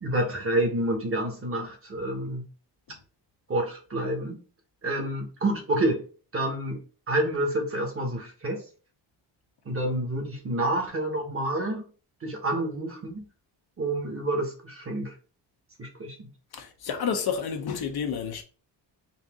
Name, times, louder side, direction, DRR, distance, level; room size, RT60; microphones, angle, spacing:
voice 1, 0.0-2.4 3.5-4.4 4.8-6.1 6.3-6.8 7.1-8.6 9.6-11.9 12.2-13.3 13.8-15.1 15.8-16.3, right 1 dB, 30° right, 1.2 m, -28 dB
voice 2, 16.5-18.4, left 6 dB, 60° left, 0.9 m, -30 dB
4.1 x 2.5 x 3.6 m
cardioid pair, 125°, 43 cm